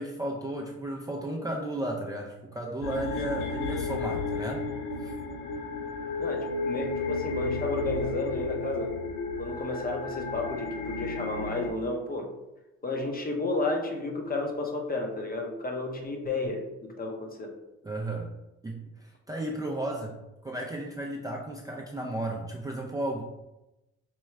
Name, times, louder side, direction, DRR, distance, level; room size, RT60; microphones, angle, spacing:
voice 1, 0.0-4.6 5.0-5.2 17.8-18.3 18.6-20.2 20.4-23.2, right 1 dB, 10° right, -1 dB, 0.4 m, -34 dB
sound 1, 2.8-11.7, left 3 dB, 80° left, 0.5 m, -33 dB
voice 2, 6.2-9.0 9.4-12.3 12.8-17.5, left 2 dB, 30° left, 2 dB, 0.7 m, -32 dB
4.5 x 2.3 x 3.1 m, 0.97 s
cardioid pair, 90°, 30 cm